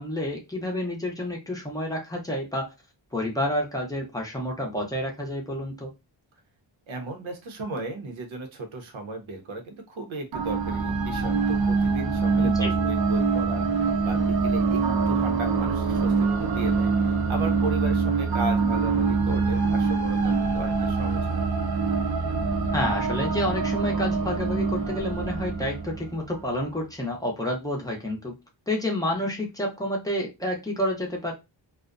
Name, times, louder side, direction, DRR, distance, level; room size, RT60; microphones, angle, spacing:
voice 1, 0.0-2.7 3.1-5.9 12.3-12.7 22.7-28.4 28.7-31.3, left 1 dB, 10° left, -1 dB, 0.5 m, -29 dB
voice 2, 6.9-21.4, right 2 dB, 85° right, 5 dB, 0.8 m, -36 dB
sound 1, 10.3-26.5, right 4 dB, 55° right, 0.5 m, -24 dB
2.4 x 2.1 x 2.4 m, 0.24 s
wide cardioid pair, 165°, 46 cm